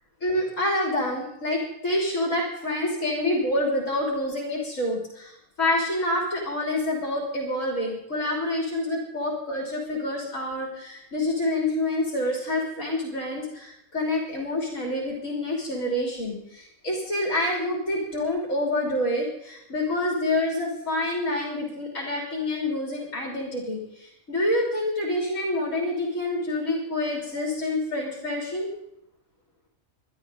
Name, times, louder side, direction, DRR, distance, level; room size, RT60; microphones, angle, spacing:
voice 1, 0.2-28.7, left 1 dB, 60° left, -1 dB, 3.7 m, -27 dB
23.5 x 12.5 x 3.9 m, 0.80 s
omnidirectional pair, 1.5 m